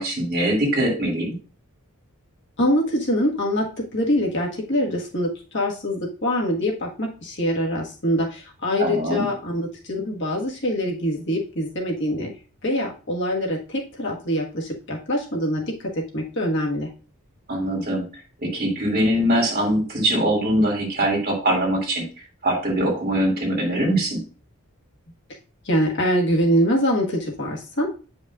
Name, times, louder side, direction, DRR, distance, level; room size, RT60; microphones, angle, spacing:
voice 1, 0.0-1.3 8.8-9.3 17.5-22.0 22.4-24.2, right 1 dB, 45° right, -1 dB, 2.7 m, -22 dB
voice 2, 2.6-12.3 12.6-16.9 25.6-27.9, equal, 55° left, -1 dB, 1.5 m, -24 dB
8.6 x 5.2 x 2.4 m, 0.35 s
head